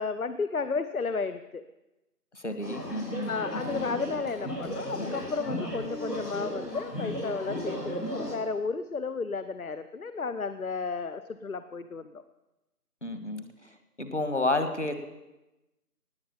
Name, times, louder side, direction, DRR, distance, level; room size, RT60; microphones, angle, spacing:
voice 1, 0.0-1.6 3.3-12.2, left 4 dB, 60° left, 12 dB, 0.8 m, -33 dB
voice 2, 2.3-3.3 13.0-13.5 14.0-14.9, left 2 dB, 45° left, 8 dB, 1.5 m, -30 dB
sound 1, 2.6-8.4, equal, 90° left, 5.0 m, -35 dB
18.5 x 7.8 x 7.0 m, 1.0 s
figure-of-eight pair, 175°, 48 cm